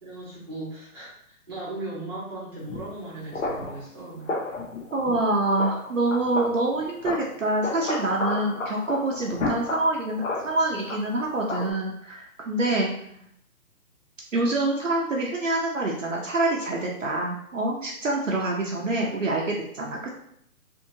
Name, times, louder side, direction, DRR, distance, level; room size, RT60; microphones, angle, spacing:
voice 1, 0.0-4.3 12.9-13.2, right 2 dB, 15° right, -9 dB, 0.8 m, -38 dB
sound 1, 2.7-2.9 3.3-3.8 4.3-5.2 5.5-6.5 6.8-11.7, left 2 dB, 55° left, 0.7 m, -32 dB
voice 2, 4.9-12.9 14.3-20.2, right 2 dB, 55° right, -2 dB, 0.6 m, -26 dB
2.7 x 2.7 x 2.7 m, 0.69 s
hypercardioid pair, 170°, 45 cm